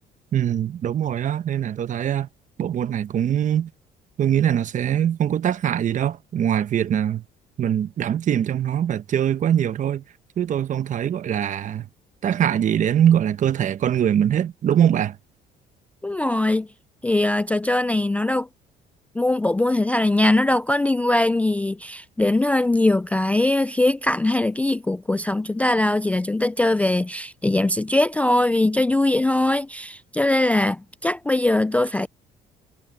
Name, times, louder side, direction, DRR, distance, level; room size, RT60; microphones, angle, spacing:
voice 1, 0.3-2.3 2.6-3.7 4.2-7.2 7.6-10.0 10.4-11.9 12.2-15.2, right 10 dB, 50° right, 1.0 m, -22 dB
voice 2, 16.0-16.7 17.0-18.5 19.2-32.1, left 2 dB, 10° left, 0.3 m, -21 dB
cardioid pair, 110°, 17 cm